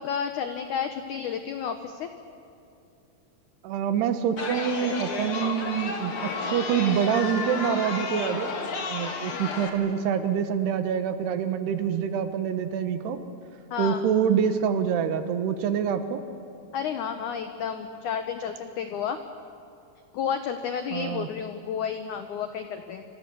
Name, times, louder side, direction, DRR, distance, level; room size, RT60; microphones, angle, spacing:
voice 1, 0.0-2.1 13.7-14.0 16.7-19.2 20.1-23.0, left 7 dB, 80° left, 7 dB, 1.7 m, -31 dB
voice 2, 3.6-8.5 8.9-13.2 13.8-16.2 20.9-21.3, right 8 dB, 75° right, 9 dB, 3.2 m, -26 dB
Chatter, 4.4-9.7, left 4 dB, 40° left, 2.2 m, -32 dB
26.0 x 25.5 x 7.0 m, 2.7 s
omnidirectional pair, 4.9 m